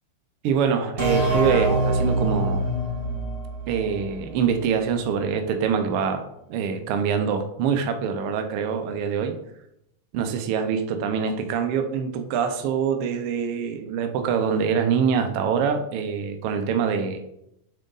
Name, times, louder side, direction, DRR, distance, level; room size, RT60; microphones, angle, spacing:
voice 1, 0.4-2.6 3.7-9.3 10.1-17.2, right 6 dB, 85° right, 6 dB, 1.2 m, -24 dB
sound 1, 1.0-4.5, right 2 dB, 30° right, 0.9 m, -25 dB
7.5 x 3.8 x 3.9 m, 0.79 s
omnidirectional pair, 3.3 m